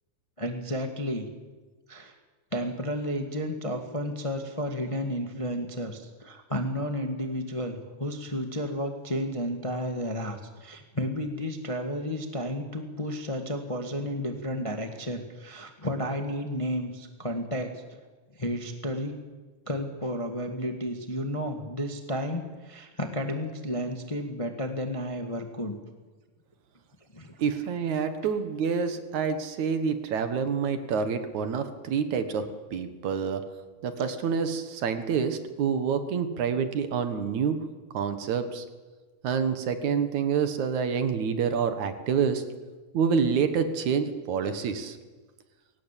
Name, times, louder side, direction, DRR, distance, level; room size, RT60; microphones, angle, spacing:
voice 1, 0.4-1.3 1.9-2.1 2.5-17.7 18.3-19.1 19.7-25.8 27.1-27.4, equal, 15° left, 5 dB, 1.3 m, -32 dB
voice 2, 27.4-32.4 32.7-33.4 33.8-37.6 37.9-38.6 39.2-42.4 42.9-45.0, right 6 dB, 70° right, 9 dB, 2.8 m, -27 dB
22.5 x 18.0 x 8.4 m, 1.3 s
omnidirectional pair, 3.5 m